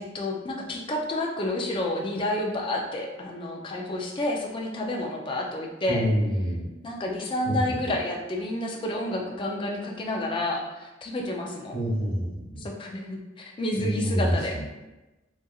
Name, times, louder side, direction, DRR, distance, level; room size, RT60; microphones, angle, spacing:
voice 1, 0.0-6.0 6.8-11.8 12.6-14.6, left 1 dB, 25° left, 0 dB, 0.3 m, -30 dB
voice 2, 5.9-6.7 7.5-7.9 11.7-12.6 13.7-14.6, equal, 90° right, -10 dB, 1.1 m, -27 dB
2.8 x 2.4 x 2.3 m, 1.1 s
head